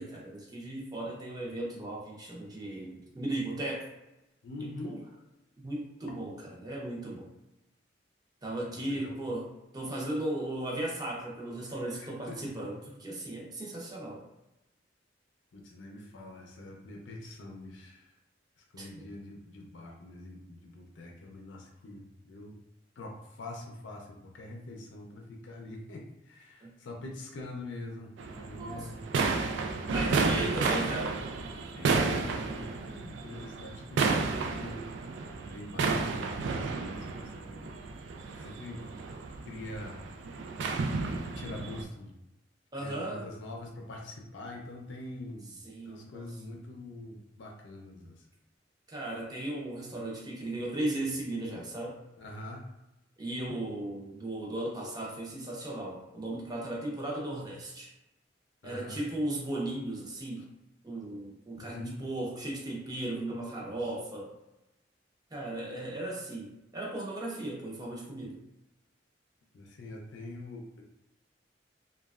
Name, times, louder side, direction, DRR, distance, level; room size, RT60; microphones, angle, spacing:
voice 1, 0.0-3.9 4.8-5.0 5.6-6.3 6.6-7.3 8.4-9.5 9.7-14.2 18.8-18.9 26.6-26.7 28.6-28.9 29.9-31.2 42.7-43.3 45.6-46.3 48.9-52.0 53.2-57.9 58.6-60.5 60.8-64.3 65.3-68.4, right 1 dB, 20° right, -3 dB, 0.7 m, -36 dB
voice 2, 4.4-5.0 8.7-9.1 12.0-12.7 15.5-18.1 18.6-22.5 23.0-29.1 31.7-34.8 35.5-37.7 38.4-39.0 39.5-40.0 41.4-42.1 42.8-45.6 45.8-48.3 52.2-52.6 58.6-59.0 60.4-60.5 61.5-62.0 69.5-70.8, left 1 dB, 90° left, 1 dB, 0.5 m, -44 dB
sound 1, 28.2-41.8, right 4 dB, 80° right, 0.3 m, -32 dB
3.0 x 2.3 x 2.3 m, 0.94 s
head